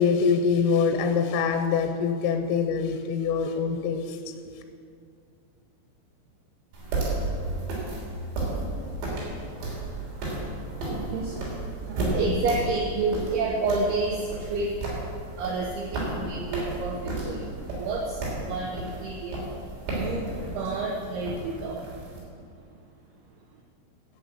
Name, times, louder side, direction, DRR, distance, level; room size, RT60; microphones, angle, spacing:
voice 1, 0.0-4.3, left 6 dB, 85° left, 7 dB, 3.2 m, -24 dB
sound 1, 6.7-22.2, right 2 dB, 60° right, 5.4 m, -33 dB
voice 2, 10.9-15.0 15.4-19.5 20.0-21.8, right 3 dB, 80° right, 0 dB, 2.3 m, -30 dB
11.0 x 8.9 x 8.8 m, 2.3 s
omnidirectional pair, 5.9 m